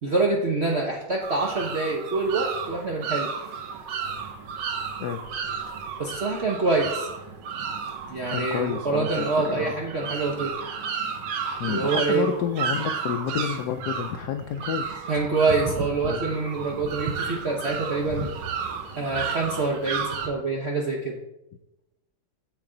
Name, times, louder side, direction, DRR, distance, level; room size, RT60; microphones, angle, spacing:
voice 1, 0.0-3.3 6.0-7.1 8.1-10.5 11.7-12.3 15.1-18.3 19.0-21.2, right 3 dB, 60° right, 0 dB, 0.7 m, -26 dB
sound 1, 1.2-20.3, right 6 dB, 90° right, 1.8 m, -32 dB
voice 2, 8.3-9.7 11.6-15.1 16.0-16.3, left 9 dB, 80° left, 7 dB, 0.9 m, -30 dB
7.8 x 7.6 x 3.8 m, 0.91 s
omnidirectional pair, 2.2 m